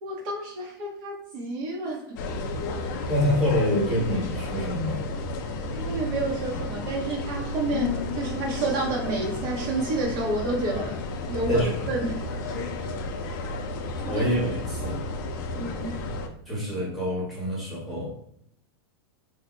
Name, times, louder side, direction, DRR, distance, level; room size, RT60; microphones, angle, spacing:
voice 1, 0.0-2.2 5.7-11.0 11.3-11.6 11.9-12.2 14.1-14.3 15.5-16.0, right 2 dB, 45° right, -2 dB, 0.7 m, -30 dB
sound 1, 2.2-16.3, left 2 dB, 50° left, 0.4 m, -32 dB
voice 2, 3.1-5.1 11.5-11.7 14.1-15.0 16.5-18.1, equal, ahead, -7 dB, 1.0 m, -26 dB
3.2 x 2.0 x 3.0 m, 0.71 s
supercardioid pair, 150°, 13 cm